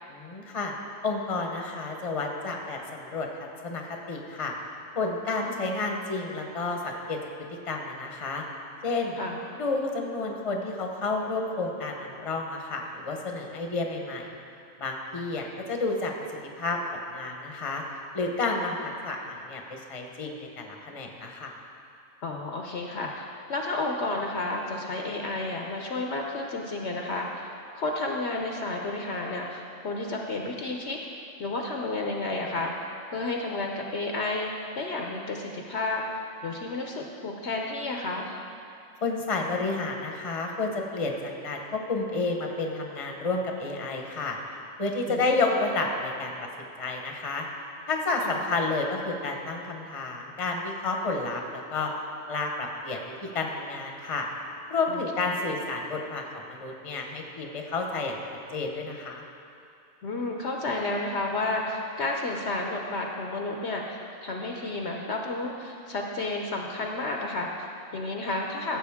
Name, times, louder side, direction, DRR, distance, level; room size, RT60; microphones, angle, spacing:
voice 1, 0.1-0.7 1.0-3.3 3.6-4.5 4.9-7.2 7.7-8.4 8.8-9.2 9.5-14.3 14.8-16.1 16.6-17.8 18.1-21.5 39.0-44.4 44.8-46.5 46.8-47.5 47.9-51.9 52.3-53.0 53.3-54.3 54.7-56.2 56.5-58.2 58.5-59.2, left 3 dB, 30° left, 2 dB, 0.9 m, -30 dB
voice 2, 22.2-31.0 31.4-32.7 33.1-34.5 34.8-36.0 36.4-38.4 45.1-45.4 48.2-48.4 54.9-55.0 60.0-68.8, left 2 dB, 60° left, 1 dB, 0.9 m, -31 dB
15.0 x 7.6 x 3.5 m, 2.5 s
omnidirectional pair, 1.4 m